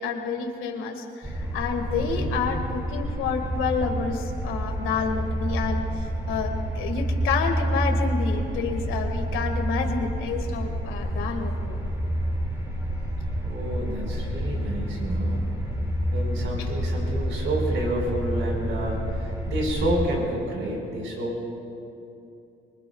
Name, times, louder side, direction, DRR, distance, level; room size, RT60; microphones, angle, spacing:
voice 1, 0.0-11.8 16.6-16.7, left 5 dB, 90° left, 4 dB, 1.8 m, -29 dB
sound 1, 1.2-20.1, right 1 dB, 15° right, 3.3 m, -28 dB
voice 2, 2.0-2.3 13.4-15.4 16.1-21.5, right 1 dB, 75° right, -1 dB, 4.7 m, -29 dB
24.0 x 24.0 x 2.3 m, 2.6 s
cardioid pair, 90°, 20 cm